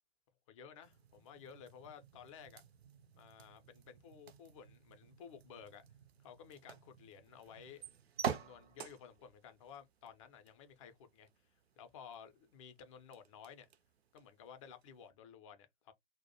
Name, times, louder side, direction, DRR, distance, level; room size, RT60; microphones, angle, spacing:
voice 1, 0.5-2.6 3.1-5.8 6.2-7.8 8.3-13.7 14.1-15.9, left 7 dB, 30° left, 0.4 m, -55 dB
sound 1, 0.8-15.1, right 7 dB, 70° right, 0.5 m, -49 dB
2.2 x 2.0 x 2.7 m
figure-of-eight pair, 110°, 33 cm